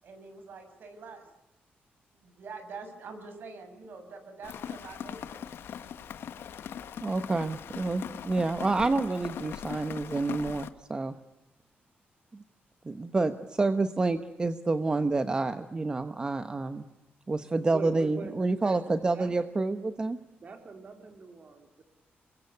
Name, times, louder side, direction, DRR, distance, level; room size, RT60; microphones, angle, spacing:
voice 1, 0.0-1.2 2.2-5.5, right 4 dB, 65° right, 7 dB, 6.8 m, -45 dB
Rain, 4.4-10.7, left 8 dB, 85° left, 1.5 m, -40 dB
voice 2, 7.0-11.1 12.3-12.4 12.8-16.8 17.3-20.2, right 3 dB, 20° right, 10 dB, 1.0 m, -28 dB
voice 3, 17.6-19.3 20.4-21.8, right 4 dB, 40° right, 5 dB, 4.0 m, -43 dB
27.5 x 23.0 x 8.4 m, 0.89 s
wide cardioid pair, 160°, 4 cm